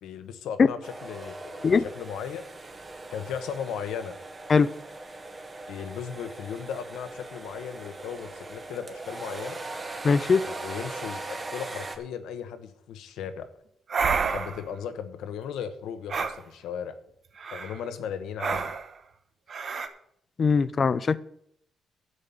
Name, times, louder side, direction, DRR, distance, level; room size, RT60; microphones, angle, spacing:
voice 1, 0.0-1.7 1.9-2.4 3.1-4.1 5.7-9.6 10.4-13.5 14.3-17.0 17.5-18.7, left 8 dB, 85° left, 10 dB, 1.1 m, -36 dB
sound 1, 0.8-12.0, right 2 dB, 25° right, 1.4 m, -40 dB
voice 2, 10.0-10.4 20.4-21.2, left 5 dB, 40° left, 17 dB, 0.6 m, -21 dB
sound 2, 13.9-14.6 16.1-16.4 17.4-17.8 18.4-18.9 19.5-19.9, right 5 dB, 50° right, 1.1 m, -29 dB
11.0 x 5.3 x 8.6 m, 0.71 s
cardioid pair, 90°, 0 cm